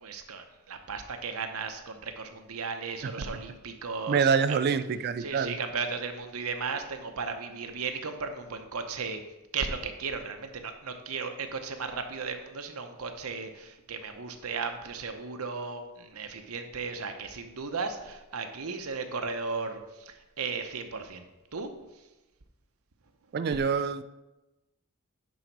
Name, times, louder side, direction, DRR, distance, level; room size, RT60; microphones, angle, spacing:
voice 1, 0.0-4.6 5.2-9.2 9.5-19.8 20.4-21.2 21.5-21.7, right 4 dB, 75° right, 0.8 m, -35 dB
voice 2, 4.1-5.5 23.3-24.0, right 6 dB, 50° right, 0.4 m, -26 dB
10.5 x 3.9 x 4.6 m
head